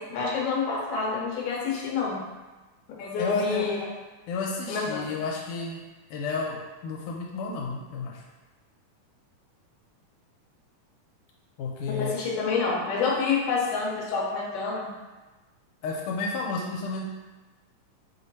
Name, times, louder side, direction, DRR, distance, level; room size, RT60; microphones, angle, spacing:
voice 1, 0.0-2.2 3.0-3.8 4.7-5.1 12.0-14.9, left 4 dB, 65° left, -3 dB, 1.7 m, -28 dB
voice 2, 3.2-3.7 4.3-5.8 6.1-8.2 11.6-12.1 15.8-17.0, left 4 dB, 85° left, -1 dB, 2.0 m, -31 dB
5.3 x 2.1 x 4.0 m, 1.2 s
omnidirectional pair, 3.6 m